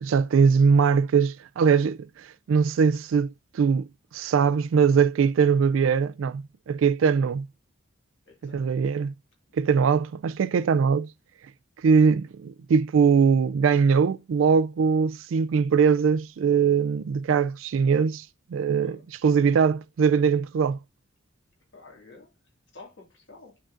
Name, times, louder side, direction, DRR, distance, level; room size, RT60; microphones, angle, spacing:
voice 1, 0.0-3.3 3.5-3.9 4.1-7.5 8.4-9.1 9.5-11.1 11.8-18.2 18.5-20.8, right 6 dB, 80° right, 0.3 m, -21 dB
voice 2, 8.2-8.7 9.5-9.6 18.8-19.1 21.7-22.3 22.7-23.6, left 3 dB, 60° left, 2.1 m, -50 dB
11.0 x 3.8 x 2.5 m
head